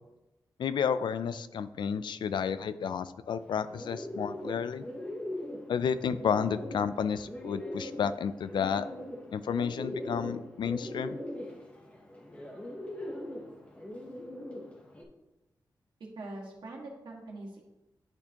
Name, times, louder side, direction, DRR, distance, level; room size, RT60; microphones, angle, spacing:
voice 1, 0.6-4.8 5.7-8.9 9.3-11.2, left 7 dB, 85° left, 13 dB, 0.3 m, -31 dB
Bird, 3.4-15.0, left 1 dB, 15° left, 0.9 m, -41 dB
voice 2, 16.1-17.6, right 2 dB, 85° right, -2 dB, 1.6 m, -43 dB
10.5 x 4.3 x 2.8 m, 0.98 s
wide cardioid pair, 175°, 8 cm